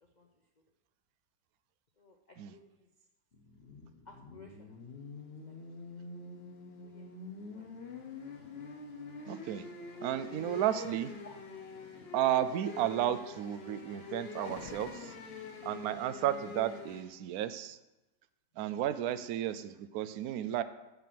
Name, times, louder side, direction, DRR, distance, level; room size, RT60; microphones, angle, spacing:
voice 1, 2.0-2.9 4.1-4.8 5.4-5.6 6.8-7.1 7.5-7.7 11.2-11.3 15.0-15.1, left 3 dB, 80° left, 3 dB, 0.4 m, -56 dB
sound 1, 3.3-17.0, left 4 dB, 40° left, 1.1 m, -46 dB
voice 2, 9.3-9.7 10.0-11.1 12.1-15.2 15.6-17.8 18.6-20.6, right 11 dB, 65° right, 12 dB, 1.0 m, -33 dB
8.4 x 6.9 x 5.9 m, 1.0 s
omnidirectional pair, 1.9 m